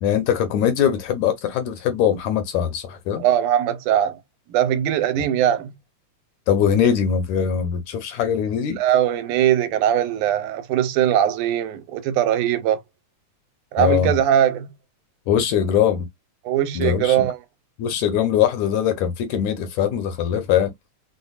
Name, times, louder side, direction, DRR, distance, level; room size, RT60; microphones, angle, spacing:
voice 1, 0.0-3.2 6.5-8.8 13.8-14.2 15.3-16.1 16.8-17.3 17.8-20.7, left 8 dB, 75° left, 1.9 m, -21 dB
voice 2, 3.2-4.2 4.5-5.7 8.7-12.8 13.7-14.7 16.5-17.4, right 11 dB, 85° right, 2.0 m, -20 dB
5.1 x 2.1 x 2.4 m
omnidirectional pair, 3.6 m